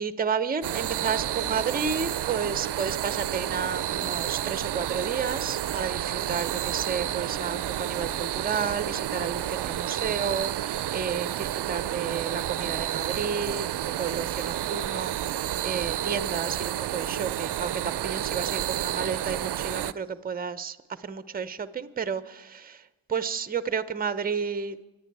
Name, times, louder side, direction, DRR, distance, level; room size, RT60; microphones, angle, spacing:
voice 1, 0.0-24.8, right 6 dB, 20° right, 13 dB, 0.7 m, -32 dB
sound 1, 0.6-19.9, right 12 dB, 55° right, 0.6 m, -30 dB
25.5 x 9.7 x 4.7 m, 1.1 s
supercardioid pair, 45°, 49 cm